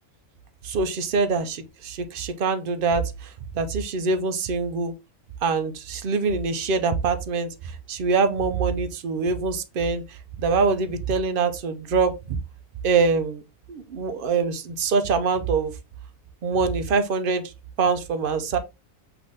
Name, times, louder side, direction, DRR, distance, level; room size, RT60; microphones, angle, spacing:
voice 1, 0.6-3.0 3.5-4.9 5.4-7.5 7.9-10.0 10.4-12.4 12.8-13.4 13.7-15.7 16.4-17.4 17.8-18.6, right 4 dB, 55° right, 0.7 m, -24 dB
5.7 x 2.7 x 3.4 m
omnidirectional pair, 1.4 m